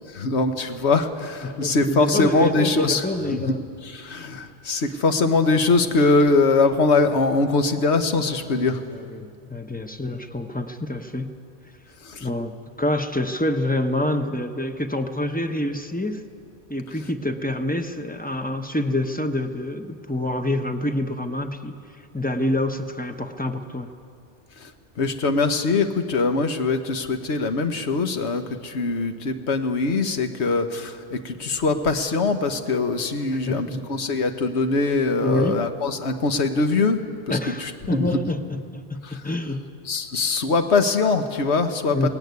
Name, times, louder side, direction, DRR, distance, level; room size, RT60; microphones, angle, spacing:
voice 1, 0.1-3.6 3.8-8.8 12.0-12.3 24.6-24.7 25.0-37.0 37.3-38.2 39.0-39.2 39.9-42.1, left 3 dB, 75° left, 8 dB, 1.4 m, -22 dB
voice 2, 1.4-3.6 8.9-11.3 12.2-16.2 16.7-21.7 22.1-23.9 33.3-34.0 35.2-35.6 37.3-39.7 41.9-42.1, left 1 dB, 10° left, 6 dB, 0.8 m, -27 dB
18.0 x 16.0 x 9.5 m, 2.4 s
omnidirectional pair, 1.1 m